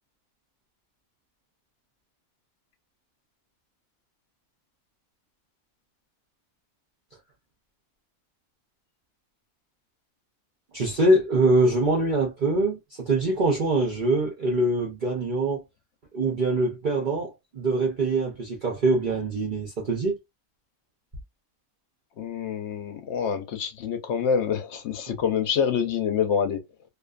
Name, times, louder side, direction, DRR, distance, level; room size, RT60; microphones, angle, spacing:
voice 1, 10.7-15.6 16.1-20.2, right 2 dB, 50° right, 0.6 m, -24 dB
voice 2, 22.2-26.6, left 7 dB, 65° left, 0.8 m, -26 dB
2.5 x 2.4 x 2.3 m
omnidirectional pair, 1.5 m